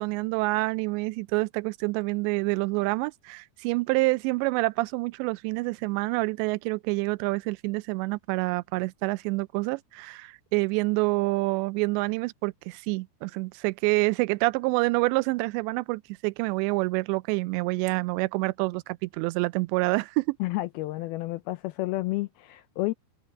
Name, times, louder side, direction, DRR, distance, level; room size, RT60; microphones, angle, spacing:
voice 1, 0.0-20.4, right 24 dB, 90° right, 2.8 m, -27 dB
voice 2, 20.4-22.9, left 19 dB, 85° left, 2.2 m, -30 dB
omnidirectional pair, 5.0 m